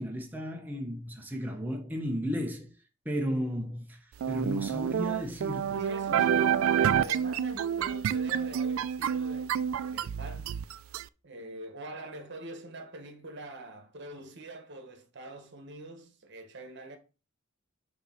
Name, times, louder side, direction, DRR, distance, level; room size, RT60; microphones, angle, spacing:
voice 1, 0.0-2.7 3.0-4.0 4.3-5.8 6.1-6.2, equal, 10° right, 0.7 m, -34 dB
sound 1, 4.2-11.0, right 8 dB, 85° right, 0.3 m, -28 dB
voice 2, 5.7-10.6 11.2-17.0, right 1 dB, 60° right, 1.2 m, -44 dB
6.6 x 2.9 x 5.5 m
head